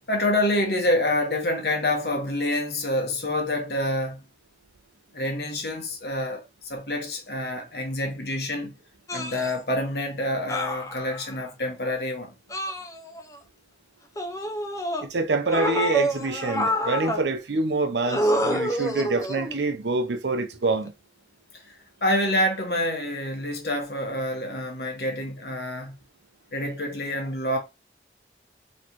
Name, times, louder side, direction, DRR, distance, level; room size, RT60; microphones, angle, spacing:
voice 1, 0.1-4.2 5.1-8.8 9.1-12.3 21.5-21.7 22.0-25.9 26.5-27.6, left 1 dB, 65° left, 1.3 m, -27 dB
sound 1, 9.1-9.5 10.5-11.4 12.5-13.4 14.2-15.0 15.5-17.2 18.1-19.6 20.7-20.9, equal, 20° left, 0.6 m, -27 dB
voice 2, 15.0-20.9, right 3 dB, 80° right, 0.7 m, -26 dB
4.3 x 3.2 x 3.0 m
head